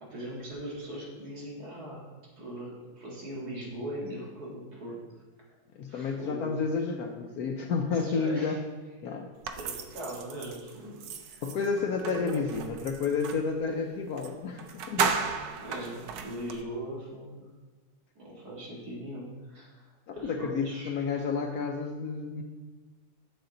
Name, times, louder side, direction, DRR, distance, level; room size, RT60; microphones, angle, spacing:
voice 1, 0.0-2.1 2.4-5.0 5.9-6.7 7.9-8.6 9.5-11.4 12.0-12.5 15.2-17.4 18.2-19.8 20.1-21.0, right 1 dB, 60° right, -5 dB, 2.4 m, -40 dB
voice 2, 5.7-8.6 9.0-9.3 11.4-15.2 20.1-22.4, left 5 dB, 70° left, 3 dB, 0.9 m, -31 dB
sound 1, 9.4-13.5 14.2-14.3 14.6-16.6, right 6 dB, 75° right, 1.3 m, -34 dB
7.3 x 6.8 x 3.9 m, 1.3 s
omnidirectional pair, 2.0 m